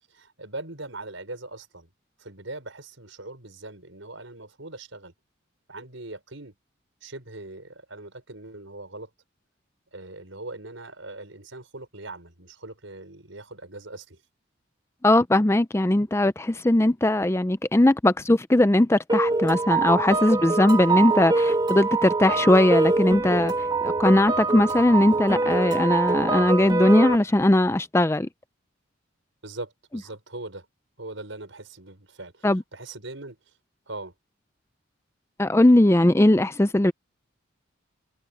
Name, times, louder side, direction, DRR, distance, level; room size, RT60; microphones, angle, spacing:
voice 1, 0.1-1.9 2.2-5.1 5.7-6.5 7.0-9.1 9.9-14.2 29.4-30.7 31.0-33.4 33.9-34.1, right 2 dB, 75° right, 5.8 m, -40 dB
voice 2, 15.0-23.5 23.8-28.3 32.4-32.6 35.4-36.9, left 1 dB, 15° left, 0.4 m, -19 dB
sound 1, 19.1-27.2, right 3 dB, 20° right, 2.0 m, -24 dB
head